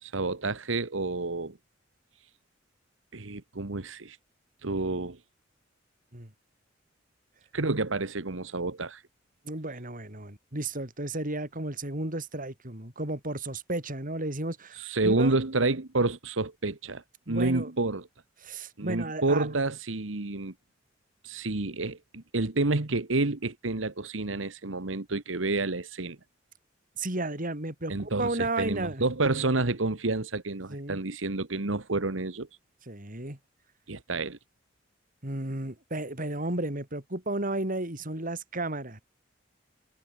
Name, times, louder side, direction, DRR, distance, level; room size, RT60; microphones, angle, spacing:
voice 1, 0.0-1.6 3.1-4.2 4.6-5.2 7.5-9.0 14.7-18.1 18.8-20.5 21.2-26.2 27.9-32.5 33.9-34.4, right 2 dB, 90° right, 1.5 m, -29 dB
voice 2, 9.4-15.3 17.3-17.7 18.4-19.5 27.0-29.1 30.7-31.0 32.9-33.4 35.2-39.0, right 2 dB, 45° right, 4.7 m, -33 dB
head